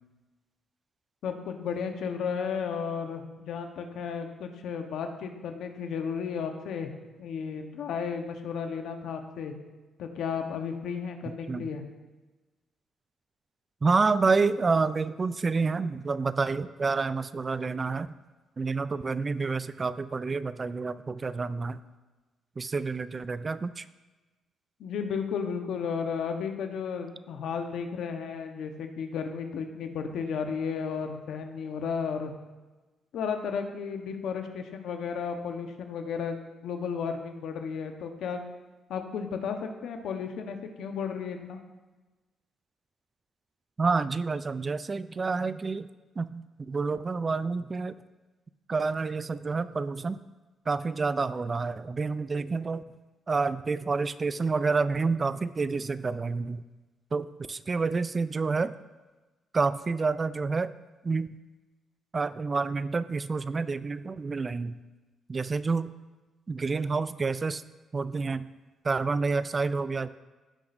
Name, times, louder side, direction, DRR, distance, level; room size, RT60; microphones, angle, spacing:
voice 1, 1.2-6.9 7.2-9.5 10.0-11.8 24.8-32.3 33.1-38.4 38.9-41.6, left 6 dB, 75° left, 5 dB, 1.0 m, -33 dB
voice 2, 13.8-18.1 18.6-21.8 22.6-23.8 43.8-45.9 46.2-48.0 48.7-50.2 50.7-52.8 53.3-56.6 57.1-58.7 59.5-60.7 61.0-61.3 62.1-64.8 65.3-65.9 66.5-67.6 67.9-68.5 68.8-70.1, right 4 dB, 30° right, 15 dB, 0.4 m, -28 dB
16.0 x 5.9 x 2.6 m, 1.2 s
cardioid pair, 90°, 0 cm